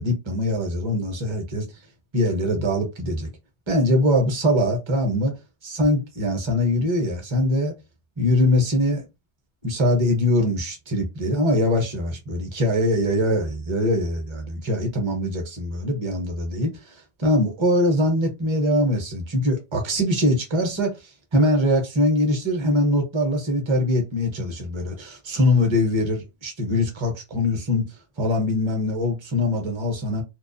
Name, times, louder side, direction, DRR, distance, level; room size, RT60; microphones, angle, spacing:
voice 1, 0.0-1.7 2.1-3.3 3.7-5.3 5.6-7.7 8.2-9.0 9.6-16.9 17.2-21.0 21.3-27.9 28.2-30.2, left 1 dB, 30° right, 0.7 m, -22 dB
2.2 x 2.2 x 2.5 m
omnidirectional pair, 1.2 m